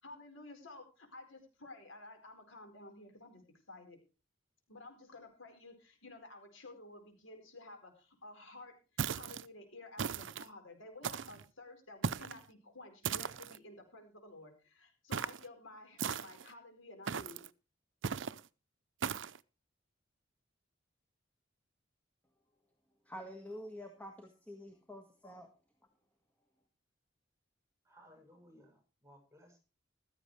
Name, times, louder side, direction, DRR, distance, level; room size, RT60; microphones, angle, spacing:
voice 1, 0.0-4.0 4.7-8.8 9.1-17.4, left 2 dB, 90° left, 4.6 m, -53 dB
sound 1, 9.0-9.5 10.0-10.5 11.0-11.4 12.0-12.4 13.0-13.6 15.1-15.5 16.0-16.5 17.1-17.5 18.0-18.4 19.0-19.4, right 6 dB, 70° right, 0.6 m, -37 dB
voice 2, 23.0-25.5, equal, 10° left, 1.7 m, -48 dB
voice 3, 27.8-29.6, equal, 15° right, 6.8 m, -61 dB
15.5 x 13.5 x 3.3 m
head